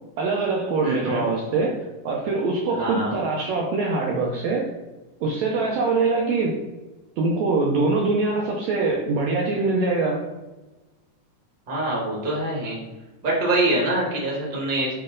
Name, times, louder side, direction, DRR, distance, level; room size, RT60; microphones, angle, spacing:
voice 1, 0.2-1.7 2.1-4.7 5.2-6.6 7.2-10.2, right 3 dB, 75° right, -1 dB, 1.7 m, -23 dB
voice 2, 0.8-1.3 2.7-3.1 11.7-12.8 13.2-14.9, right 1 dB, 20° right, -4 dB, 1.3 m, -25 dB
7.9 x 3.2 x 3.8 m, 1.1 s
omnidirectional pair, 3.7 m